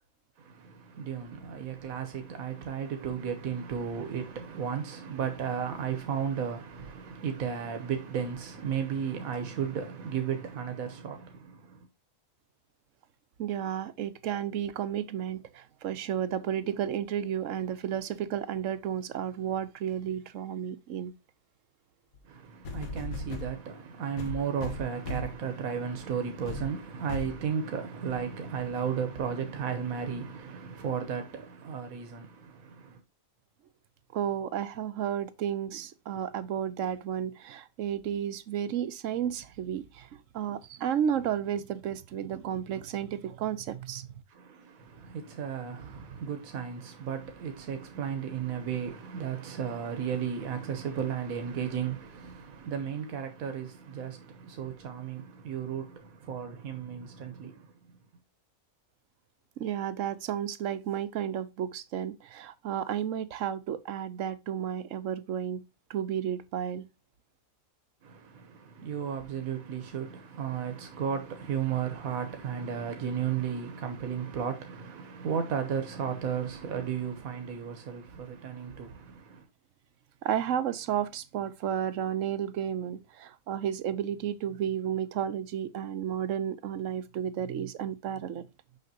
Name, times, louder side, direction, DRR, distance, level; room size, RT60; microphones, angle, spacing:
voice 1, 0.4-11.9 22.2-33.0 44.3-58.0 68.0-79.5, right 7 dB, 85° right, 1.4 m, -34 dB
voice 2, 13.4-21.1 34.1-40.1 40.3-44.1 59.6-65.6 65.9-66.8 80.2-88.4, right 9 dB, 70° right, 1.1 m, -32 dB
sound 1, 22.1-22.2 22.6-23.5 24.2-25.4 25.9-26.1 26.5-26.7 27.1-27.4 28.1-28.2, left 2 dB, 90° left, 1.8 m, -36 dB
6.6 x 6.0 x 2.8 m
omnidirectional pair, 1.4 m